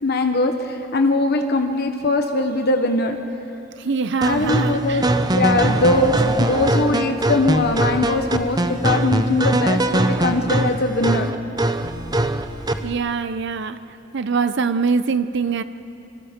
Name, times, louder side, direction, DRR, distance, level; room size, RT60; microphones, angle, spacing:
voice 1, 0.0-3.2 4.2-5.0 5.3-11.3, left 2 dB, 55° left, 5 dB, 1.1 m, -21 dB
voice 2, 3.8-5.0 12.8-13.8 14.1-15.6, right 5 dB, 60° right, 12 dB, 0.6 m, -23 dB
sound 1, 4.2-12.9, right 1 dB, 20° right, 0.8 m, -21 dB
26.0 x 25.5 x 5.2 m, 2.8 s
head